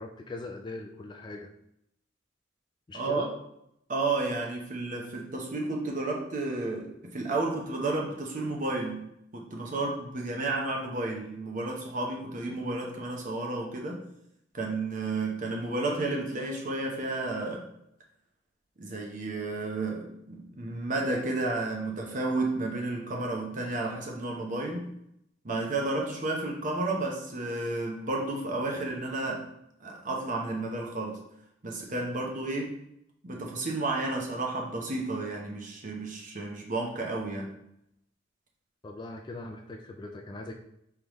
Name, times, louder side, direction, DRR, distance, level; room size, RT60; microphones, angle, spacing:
voice 1, 0.0-1.5 2.9-3.3 38.8-40.5, left 2 dB, 25° left, 3 dB, 0.3 m, -40 dB
voice 2, 2.9-3.3 3.9-9.0 9.3-14.0 14.5-17.7 18.8-24.9 25.4-29.5 29.8-31.2 31.6-32.8 33.2-37.6, right 2 dB, 40° right, 0 dB, 0.9 m, -32 dB
4.9 x 3.5 x 3.0 m, 0.77 s
head